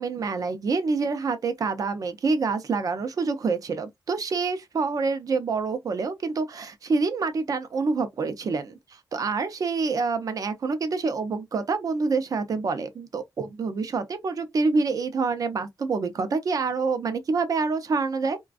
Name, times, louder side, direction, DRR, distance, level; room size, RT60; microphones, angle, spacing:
voice 1, 0.0-18.4, right 4 dB, 50° right, 0.5 m, -27 dB
2.4 x 2.2 x 2.3 m
wide cardioid pair, 130°, 8 cm